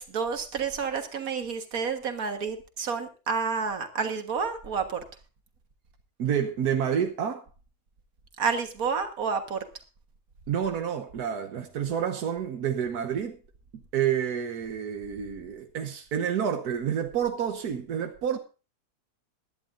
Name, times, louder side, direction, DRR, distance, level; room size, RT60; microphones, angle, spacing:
voice 1, 0.0-5.0 8.4-9.6, right 5 dB, 70° right, 2.0 m, -30 dB
voice 2, 6.2-7.4 10.5-13.4 13.7-18.4, right 8 dB, 90° right, 1.5 m, -29 dB
21.5 x 11.0 x 2.6 m
omnidirectional pair, 1.6 m